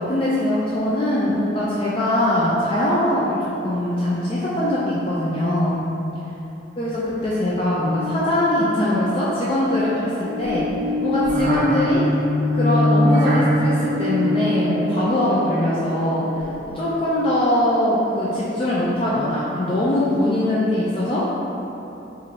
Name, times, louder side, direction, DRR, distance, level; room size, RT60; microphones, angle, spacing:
voice 1, 0.1-3.4 3.6-5.8 6.8-6.9 7.2-10.6 11.0-12.0 12.5-16.5 16.7-21.3, left 1 dB, 30° left, -8 dB, 0.3 m, -21 dB
sound 1, 7.8-16.9, left 1 dB, 45° right, 0.4 m, -24 dB
4.4 x 2.5 x 2.7 m, 3.0 s
head